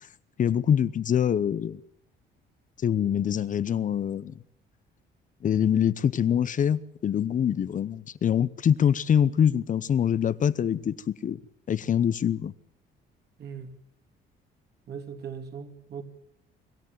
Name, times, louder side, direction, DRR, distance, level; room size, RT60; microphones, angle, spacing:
voice 1, 0.4-1.8 2.8-4.3 5.4-11.4 11.7-12.5, left 8 dB, 45° left, 0.8 m, -24 dB
voice 2, 13.4-13.7 14.9-16.0, right 7 dB, 60° right, 3.2 m, -39 dB
26.0 x 14.0 x 9.2 m
cardioid pair, 110°, 19 cm